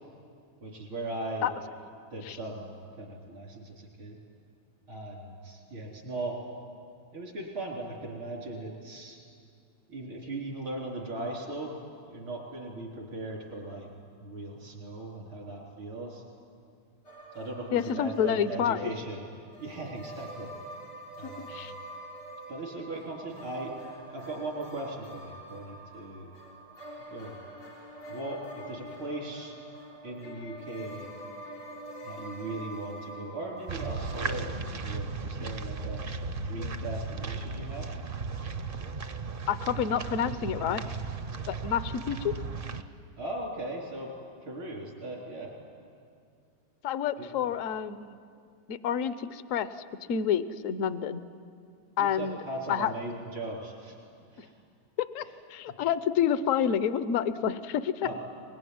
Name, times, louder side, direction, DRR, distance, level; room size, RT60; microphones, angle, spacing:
voice 1, 0.6-1.5 2.1-4.2 4.9-6.4 7.1-9.2 9.9-11.7 12.1-13.9 14.2-16.2 17.3-19.3 19.6-20.5 21.1-21.7 22.5-23.8 24.1-26.3 27.1-27.4 28.1-29.5 30.0-31.1 32.0-36.0 36.4-37.9 43.2-44.1 44.4-45.5 47.2-47.3 52.0-54.0 54.3-54.6 55.2-55.3 58.0-58.2, right 2 dB, 90° right, -1 dB, 4.7 m, -38 dB
sound 1, 17.0-34.5, right 1 dB, 85° left, 4.6 m, -45 dB
voice 2, 17.7-18.9 21.2-21.7 39.5-40.8 41.5-42.3 46.8-48.2 48.7-49.7 50.1-51.2 52.0-52.4 52.7-52.9 54.4-54.5 55.0-55.2 55.5-58.1, left 8 dB, 60° left, 13 dB, 0.8 m, -28 dB
sound 2, 33.7-42.8, right 4 dB, 50° right, 0.6 m, -36 dB
24.0 x 21.5 x 9.5 m, 2.3 s
omnidirectional pair, 2.2 m